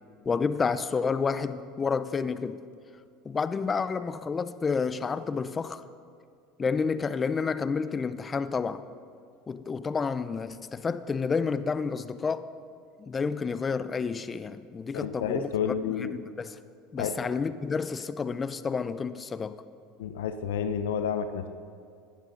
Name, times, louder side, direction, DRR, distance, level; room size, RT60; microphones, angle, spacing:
voice 1, 0.3-2.6 3.2-5.8 6.6-8.8 9.5-12.5 13.0-15.5 16.0-16.6 16.9-19.6, left 5 dB, 25° left, 0.6 m, -30 dB
voice 2, 14.9-16.1 17.0-17.2 20.0-21.5, left 7 dB, 80° left, 0.7 m, -30 dB
17.5 x 11.5 x 3.9 m
hypercardioid pair, 95°, 0 cm